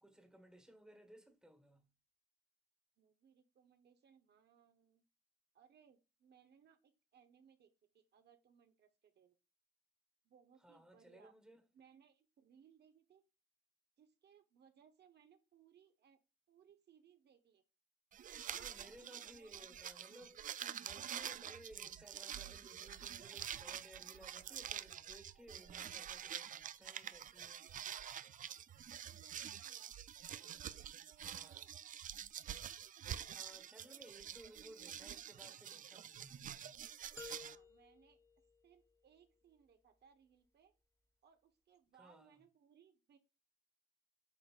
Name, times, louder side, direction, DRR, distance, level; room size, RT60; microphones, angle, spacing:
voice 1, 0.0-1.9 10.6-11.6 18.4-27.6 31.2-31.7 33.3-36.9 42.0-42.4, right 1 dB, 5° right, 1.4 m, -60 dB
voice 2, 3.0-5.0 5.5-9.3 10.2-11.3 11.7-13.2 14.0-16.2 16.5-17.6 18.3-19.7 28.4-29.9 30.3-31.7 37.1-38.2 38.6-40.7 41.2-43.2, right 7 dB, 60° right, 0.9 m, -68 dB
sound 1, 18.1-37.5, right 9 dB, 40° right, 0.4 m, -47 dB
sound 2, 37.2-39.2, left 4 dB, 15° left, 0.7 m, -55 dB
8.3 x 5.0 x 2.4 m
cardioid pair, 90°, 20 cm